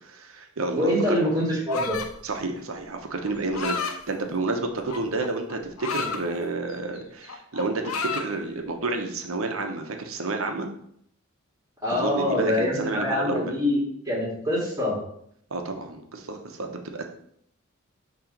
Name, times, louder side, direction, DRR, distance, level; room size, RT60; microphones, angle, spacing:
voice 1, 0.0-1.2 2.2-10.7 11.9-13.5 15.5-17.0, right 3 dB, 70° right, 4 dB, 0.9 m, -30 dB
voice 2, 0.7-2.0 11.8-13.8 14.1-15.0, left 1 dB, 20° right, -7 dB, 2.1 m, -24 dB
sound 1, 1.7-2.2 3.3-4.0 4.9-6.2 6.7-7.0 7.2-8.3, left 5 dB, 80° left, 0.6 m, -31 dB
5.7 x 3.1 x 5.3 m, 0.69 s
head